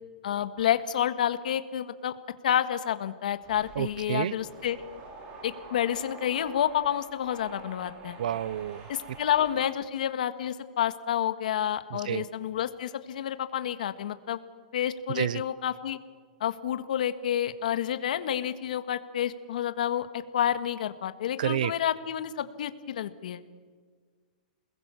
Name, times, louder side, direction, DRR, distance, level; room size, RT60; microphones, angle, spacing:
voice 1, 0.2-2.2 2.4-4.8 5.4-8.2 8.9-14.4 14.7-16.0 16.4-23.4, left 10 dB, 70° left, 11 dB, 1.7 m, -29 dB
sound 1, 3.4-9.8, right 3 dB, 30° right, 4.8 m, -46 dB
voice 2, 3.8-4.3 8.2-8.8 12.1-12.2 15.2-15.4 21.4-21.7, right 10 dB, 75° right, 21 dB, 0.6 m, -29 dB
29.0 x 21.0 x 7.0 m, 1.5 s
hypercardioid pair, 160°, 4 cm